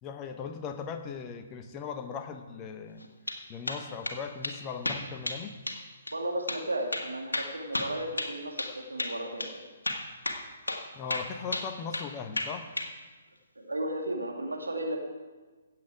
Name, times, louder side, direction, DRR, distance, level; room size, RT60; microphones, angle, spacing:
voice 1, 0.0-3.0 3.5-5.5 10.9-12.7, left 6 dB, 20° left, 6 dB, 1.0 m, -38 dB
sound 1, 3.0-3.4 3.7-4.2 4.4-4.6 4.8-5.4 5.7-5.8 6.1-6.2 6.5-6.6 6.9-8.7 9.0-9.1 9.4-9.5 9.8-10.4 10.7-10.8 11.1-12.1 12.4-12.9, left 2 dB, 75° left, 1.7 m, -33 dB
voice 2, 6.1-9.5 13.6-15.1, right 1 dB, 75° right, 2 dB, 2.0 m, -34 dB
16.0 x 8.0 x 4.8 m, 1.3 s
figure-of-eight pair, 130°, 0 cm